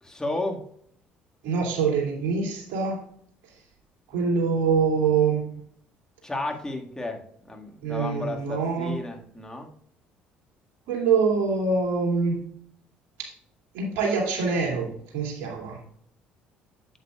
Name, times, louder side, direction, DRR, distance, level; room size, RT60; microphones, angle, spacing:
voice 1, 0.0-0.6 6.2-9.7, left 2 dB, 15° left, 2 dB, 1.8 m, -33 dB
voice 2, 1.4-3.0 4.1-5.4 7.8-9.0 10.9-12.4 13.2-13.3 13.7-15.8, right 5 dB, 65° right, -1 dB, 2.6 m, -25 dB
8.0 x 7.9 x 2.3 m, 0.64 s
hypercardioid pair, 55°, 5 cm